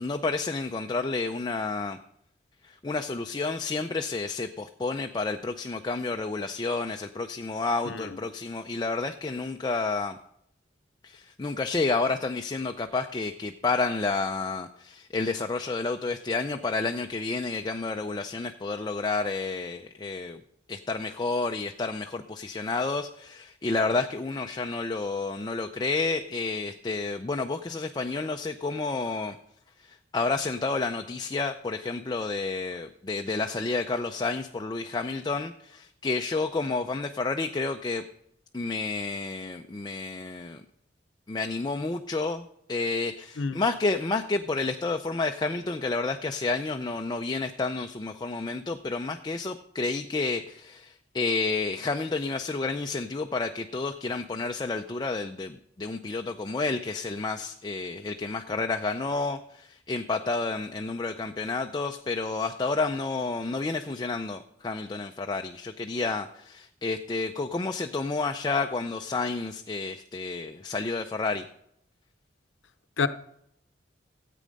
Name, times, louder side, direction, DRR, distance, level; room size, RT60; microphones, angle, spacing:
voice 1, 0.0-2.0 2.6-10.2 11.0-20.4 20.7-29.4 29.8-38.0 38.5-40.6 41.3-71.5, left 3 dB, 20° left, 0.4 m, -30 dB
voice 2, 7.8-8.2 43.4-43.6 73.0-73.1, left 4 dB, 80° left, 0.7 m, -28 dB
13.5 x 8.5 x 5.2 m
head